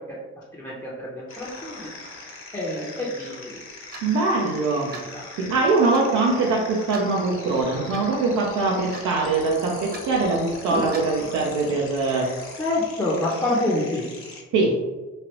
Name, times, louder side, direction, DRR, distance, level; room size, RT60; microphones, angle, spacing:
voice 1, 0.5-1.9 2.5-3.6 5.1-5.2 10.7-10.8 12.6-14.1, left 2 dB, 10° left, -7 dB, 0.6 m, -27 dB
sound 1, 1.3-14.4, left 3 dB, 45° left, 0.9 m, -41 dB
Clock, 3.9-4.1 4.9-5.1 5.9-6.1 6.9-7.1 7.9-8.0 8.9-9.1 9.9-10.1 10.9-11.1, right 2 dB, 30° right, 0.6 m, -39 dB
voice 2, 4.0-4.9 5.4-12.3 14.5-14.7, right 3 dB, 80° right, -2 dB, 0.5 m, -22 dB
3.2 x 2.5 x 2.9 m, 1.2 s
cardioid pair, 90°, 30 cm